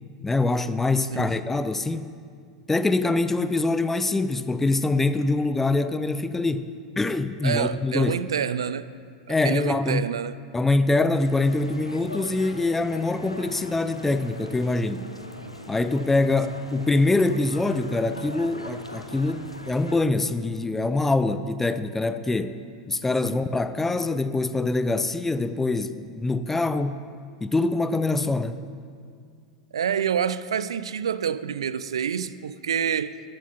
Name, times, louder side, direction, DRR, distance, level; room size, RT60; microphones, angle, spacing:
voice 1, 0.2-2.1 2.7-8.2 9.3-10.1 10.5-15.1 15.7-22.6 22.9-27.1 27.4-28.6, left 2 dB, 10° left, 0.4 m, -24 dB
voice 2, 7.4-8.9 9.3-10.4 23.2-23.4 29.7-33.2, right 8 dB, 70° right, 0.3 m, -27 dB
sound 1, 11.2-20.0, left 1 dB, 90° left, 0.7 m, -41 dB
13.5 x 7.6 x 5.8 m
figure-of-eight pair, 85°, 3 cm